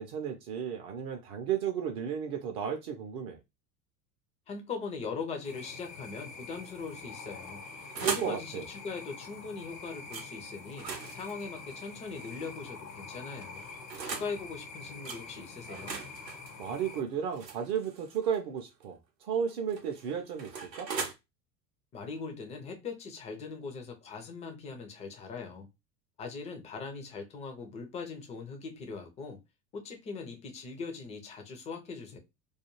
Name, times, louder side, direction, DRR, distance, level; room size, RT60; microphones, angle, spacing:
voice 1, 0.0-3.4 8.0-8.6 16.6-20.9, right 8 dB, 40° right, 0.5 m, -34 dB
voice 2, 4.5-7.6 8.0-13.6 14.0-16.0 21.9-25.7 26.2-29.4 29.7-32.2, left 4 dB, 15° left, 0.4 m, -40 dB
sound 1, 5.4-17.0, left 4 dB, 75° left, 0.9 m, -46 dB
sound 2, 7.4-8.4 10.1-10.3 10.7-12.6 13.4-14.3 15.1-15.2 15.7-18.4 19.5-21.1, right 5 dB, 85° right, 0.6 m, -40 dB
2.3 x 2.3 x 2.9 m
figure-of-eight pair, 75°, 49 cm